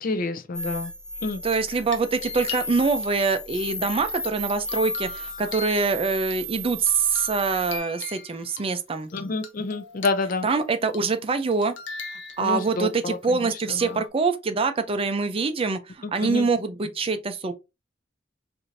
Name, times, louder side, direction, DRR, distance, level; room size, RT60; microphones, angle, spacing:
voice 1, 0.0-0.9 1.2-1.4 9.1-10.5 12.4-14.0 16.2-16.5, left 3 dB, 50° left, 0.5 m, -28 dB
sound 1, 0.5-7.8, equal, 5° left, 0.8 m, -34 dB
voice 2, 1.4-9.1 10.4-11.7 12.4-17.5, right 4 dB, 30° right, 0.5 m, -25 dB
sound 2, 1.6-3.0 3.5-6.4 6.8-8.7 9.1-10.6 10.9-11.2 11.5-12.8 13.8-14.1, left 5 dB, 70° left, 0.8 m, -40 dB
4.7 x 2.6 x 2.6 m
head